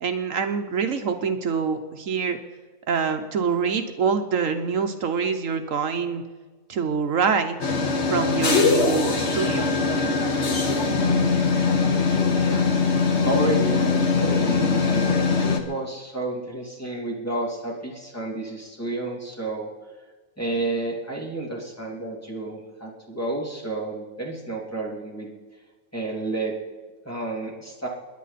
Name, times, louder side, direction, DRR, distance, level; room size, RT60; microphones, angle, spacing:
voice 1, 0.0-2.4 2.9-6.2 6.7-7.6 8.1-9.7, right 6 dB, 70° right, 6 dB, 1.2 m, -25 dB
sound 1, 7.6-15.6, left 4 dB, 55° left, 1.6 m, -21 dB
voice 2, 13.2-19.7 20.4-25.3 25.9-26.5 27.0-27.9, right 2 dB, 10° left, -3 dB, 2.9 m, -30 dB
28.5 x 10.5 x 4.1 m, 1.3 s
omnidirectional pair, 1.4 m